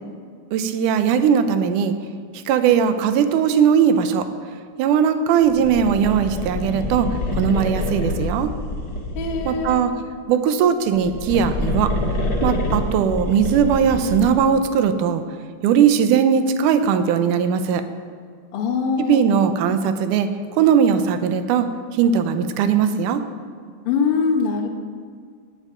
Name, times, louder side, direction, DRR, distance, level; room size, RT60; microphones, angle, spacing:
voice 1, 0.5-1.9 2.5-4.3 4.8-7.1 7.3-8.5 9.5-9.9 10.3-11.9 12.4-15.2 15.6-17.8 19.0-21.7 22.0-23.2, right 7 dB, 85° right, 9 dB, 2.2 m, -19 dB
sound 1, 5.5-9.9 10.8-14.5, left 1 dB, 35° left, 1.8 m, -26 dB
voice 2, 9.1-9.8 18.5-19.2 23.8-24.7, left 5 dB, 60° left, 2 dB, 1.7 m, -22 dB
17.5 x 9.0 x 3.8 m, 2.1 s
omnidirectional pair, 3.5 m